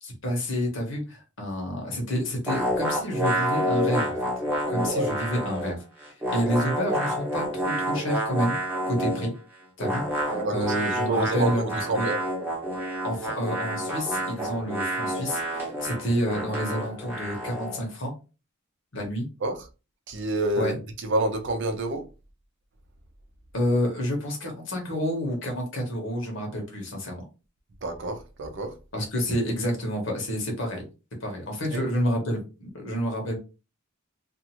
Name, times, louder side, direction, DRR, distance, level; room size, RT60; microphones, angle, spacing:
voice 1, 0.0-4.3 4.7-8.5 8.9-9.3 9.8-12.1 13.0-18.1 18.9-19.3 20.5-20.8 23.5-27.2 28.9-30.8 31.2-33.4, equal, 65° left, 1.1 m, -29 dB
sound 1, 2.5-5.8 6.0-9.3 9.8-17.8, equal, 10° right, 0.8 m, -29 dB
voice 2, 4.8-5.1 10.3-10.7 11.1-12.2 19.4-19.6 20.1-20.7 21.1-22.0 27.8-28.7 31.7-31.8, right 2 dB, 60° right, 0.6 m, -28 dB
2.5 x 2.4 x 2.8 m
head